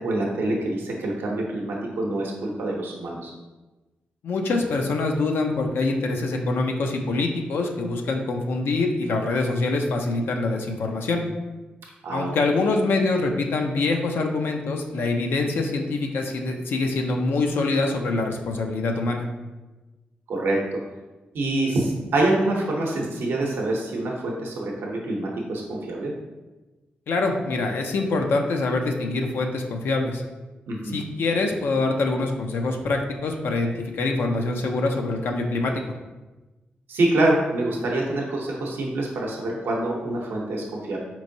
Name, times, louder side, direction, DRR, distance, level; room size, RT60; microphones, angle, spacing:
voice 1, 0.0-3.3 12.0-12.7 20.3-20.6 21.3-26.1 30.7-31.0 36.9-41.0, right 2 dB, 85° right, -1 dB, 0.6 m, -26 dB
voice 2, 4.2-11.2 12.1-19.3 27.1-30.2 30.8-35.9, left 3 dB, 80° left, 3 dB, 0.4 m, -25 dB
4.3 x 3.0 x 2.6 m, 1.1 s
cardioid pair, 75°, 4 cm